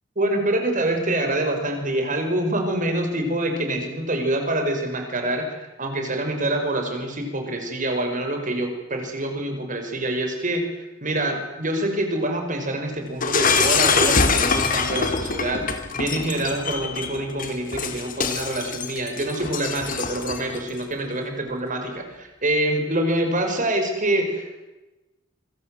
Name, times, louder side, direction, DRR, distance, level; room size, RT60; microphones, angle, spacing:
voice 1, 0.2-10.6 11.0-24.6, right 1 dB, 45° right, 4 dB, 5.6 m, -26 dB
Shatter, 13.2-20.6, left 5 dB, 45° left, 3.1 m, -24 dB
26.5 x 24.5 x 7.9 m, 1.1 s
head